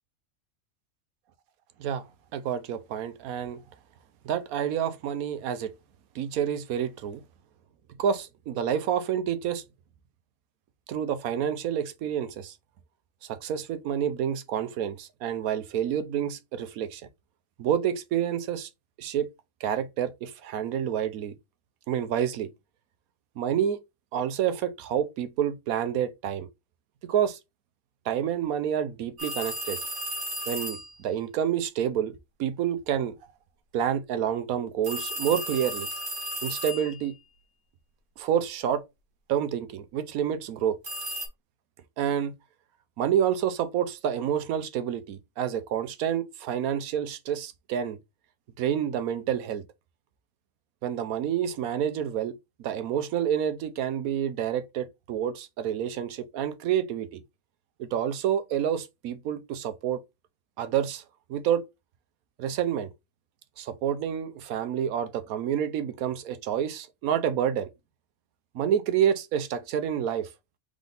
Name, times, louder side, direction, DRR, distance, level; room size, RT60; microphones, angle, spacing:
voice 1, 2.3-3.6 4.2-5.7 6.1-7.2 8.0-9.6 10.9-12.5 13.2-17.0 17.6-18.7 19.0-19.3 19.6-21.3 21.9-22.5 23.4-23.8 24.1-26.5 27.1-27.4 28.1-29.8 30.5-33.1 33.7-35.9 36.4-37.1 38.2-38.8 39.3-40.8 42.0-42.3 43.0-48.0 48.6-49.6 50.8-57.2 57.8-60.0 60.6-61.0 61.3-61.6 62.4-62.9 63.6-67.7 68.5-70.3, right 9 dB, 85° right, 1.1 m, -28 dB
sound 1, 29.2-30.9 34.8-37.1 40.8-41.3, right 1 dB, 60° right, 1.8 m, -34 dB
3.7 x 3.6 x 3.8 m
omnidirectional pair, 1.5 m